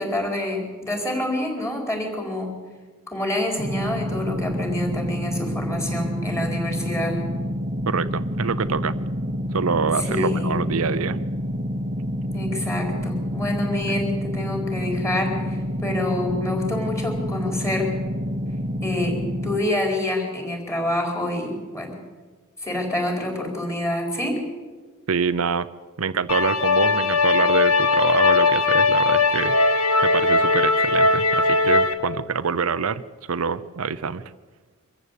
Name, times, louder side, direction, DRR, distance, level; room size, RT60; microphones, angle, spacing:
voice 1, 0.0-2.5 3.1-7.2 10.0-10.6 12.3-18.0 18.8-21.9 22.6-24.4, left 1 dB, 15° left, 2 dB, 4.7 m, -27 dB
sound 1, 3.6-19.6, equal, 40° right, 1.1 m, -28 dB
voice 2, 7.9-8.9 9.5-11.2 25.1-25.7 26.0-33.0 33.3-34.2, right 5 dB, 70° right, 12 dB, 0.7 m, -25 dB
sound 2, 26.3-31.9, left 3 dB, 90° left, 1.6 m, -19 dB
24.5 x 14.5 x 8.4 m, 1.4 s
head